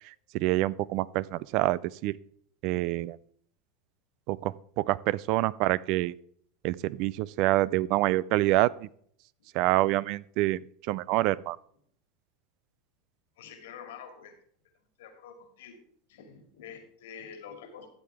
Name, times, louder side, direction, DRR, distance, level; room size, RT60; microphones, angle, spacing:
voice 1, 0.3-2.2 2.6-3.2 4.3-6.2 6.6-8.9 9.5-10.6 10.9-11.6, right 17 dB, 60° right, 22 dB, 0.3 m, -26 dB
voice 2, 13.4-14.3 15.0-15.8 16.1-17.9, left 7 dB, 80° left, 5 dB, 2.2 m, -46 dB
13.0 x 7.5 x 3.4 m, 0.63 s
supercardioid pair, 110°, 0 cm